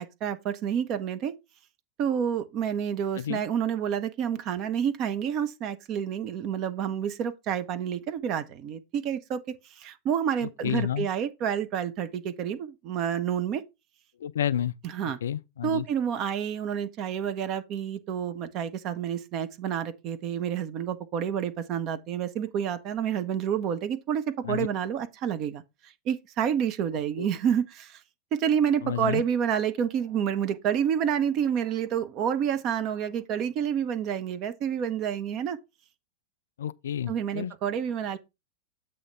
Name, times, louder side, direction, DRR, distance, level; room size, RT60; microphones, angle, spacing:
voice 1, 0.0-1.3 2.0-13.6 14.8-15.2 15.6-28.0 28.3-35.6 37.1-38.2, right 8 dB, 35° right, 0.7 m, -29 dB
voice 2, 10.4-11.1 14.2-14.7 15.2-15.9 24.4-24.7 27.2-27.3 28.8-29.2 36.6-37.5, left 9 dB, 65° left, 0.3 m, -30 dB
7.9 x 3.3 x 5.5 m
figure-of-eight pair, 90°, 0 cm